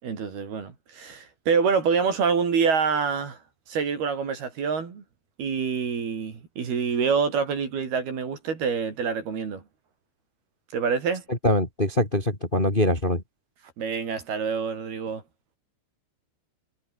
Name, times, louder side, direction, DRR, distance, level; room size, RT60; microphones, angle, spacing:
voice 1, 0.0-3.4 3.7-5.0 5.4-9.6 10.7-11.2 13.8-15.2, right 6 dB, 55° right, 5.7 m, -26 dB
voice 2, 11.4-13.2, left 1 dB, 10° left, 3.1 m, -23 dB
omnidirectional pair, 5.6 m